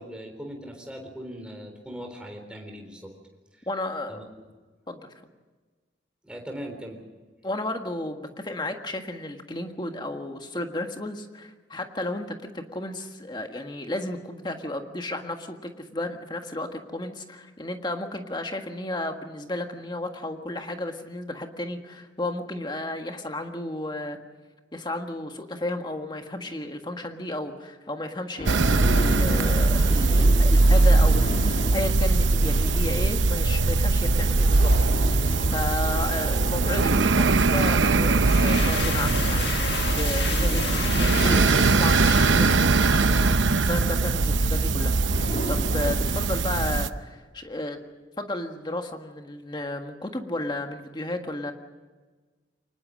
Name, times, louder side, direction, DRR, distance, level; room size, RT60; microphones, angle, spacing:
voice 1, 0.0-3.1 3.5-3.7 4.1-4.2 6.2-7.0, equal, 5° right, 2 dB, 3.8 m, -39 dB
voice 2, 3.7-4.3 4.9-5.1 7.4-24.2 24.7-39.4 39.9-44.9 45.5-47.8 48.2-51.5, left 1 dB, 25° left, 5 dB, 1.6 m, -33 dB
sound 1, 28.4-46.9, left 1 dB, 45° left, 2.2 m, -37 dB
sound 2, 28.4-46.9, right 3 dB, 85° right, 0.8 m, -21 dB
sound 3, 38.1-43.8, left 5 dB, 65° left, 1.7 m, -33 dB
24.5 x 20.0 x 6.4 m, 1.4 s
head